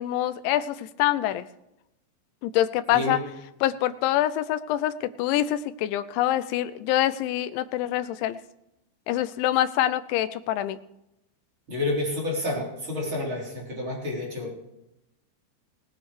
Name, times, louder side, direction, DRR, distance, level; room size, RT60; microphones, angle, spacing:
voice 1, 0.0-1.5 2.4-3.2 3.6-8.4 9.1-10.8, left 13 dB, 85° left, 13 dB, 3.0 m, -25 dB
voice 2, 11.7-14.5, left 2 dB, 30° right, -4 dB, 4.3 m, -29 dB
18.0 x 9.9 x 4.9 m, 0.86 s
omnidirectional pair, 5.2 m